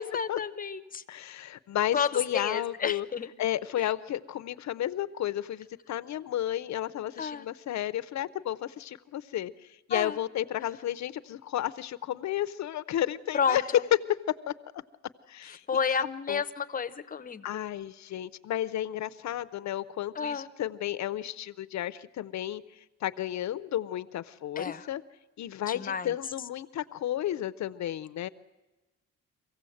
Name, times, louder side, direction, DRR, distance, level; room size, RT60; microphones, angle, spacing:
voice 1, 0.0-1.0 1.9-3.3 3.8-3.9 7.2-7.5 9.9-10.2 13.3-13.8 15.7-17.7 20.1-20.5 24.6-24.9 25.7-26.1, left 6 dB, 25° left, 11 dB, 0.7 m, -31 dB
voice 2, 1.1-3.1 3.4-13.6 14.5-14.6 15.3-15.6 16.0-16.4 17.4-25.0 25.4-28.3, left 12 dB, 60° left, 15 dB, 0.6 m, -33 dB
24.5 x 16.0 x 7.8 m, 1.1 s
cardioid pair, 155°, 31 cm